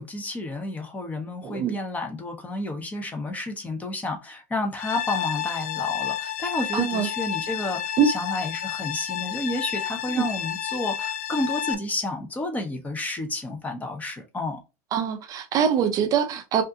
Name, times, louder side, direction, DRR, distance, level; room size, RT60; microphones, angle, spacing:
voice 1, 0.0-14.6, left 2 dB, 15° left, 0.8 m, -31 dB
voice 2, 1.4-1.8 6.7-7.1 8.0-8.1 10.2-10.3 14.9-16.6, right 7 dB, 40° right, 0.6 m, -23 dB
sound 1, 4.8-11.7, left 10 dB, 85° left, 0.5 m, -30 dB
3.4 x 2.5 x 2.7 m
supercardioid pair, 120°, 9 cm